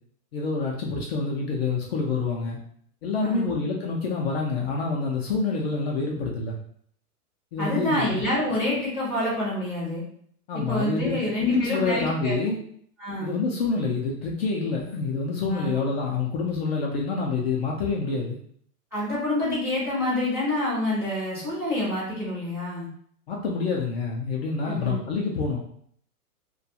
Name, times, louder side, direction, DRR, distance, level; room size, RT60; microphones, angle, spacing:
voice 1, 0.3-2.6 3.0-6.6 7.5-8.2 10.5-12.6 13.2-18.4 23.3-25.6, left 4 dB, 45° left, -2 dB, 0.4 m, -27 dB
voice 2, 3.2-3.5 7.6-10.0 10.5-12.3 13.0-13.4 15.5-15.8 18.9-22.9 24.7-25.0, left 1 dB, 5° right, -11 dB, 0.5 m, -27 dB
2.3 x 2.2 x 2.7 m, 0.63 s
hypercardioid pair, 150°, 45 cm